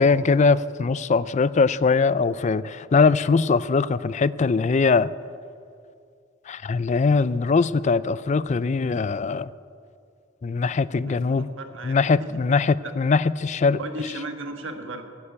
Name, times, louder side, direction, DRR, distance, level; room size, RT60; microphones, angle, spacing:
voice 1, 0.0-5.1 6.5-9.5 10.4-11.5 11.8-13.8, left 4 dB, 35° left, 18 dB, 0.4 m, -21 dB
voice 2, 11.0-11.9 12.2-12.4 12.8-12.9 13.8-15.0, right 2 dB, 75° right, 6 dB, 1.4 m, -35 dB
15.5 x 9.6 x 8.6 m, 2.4 s
head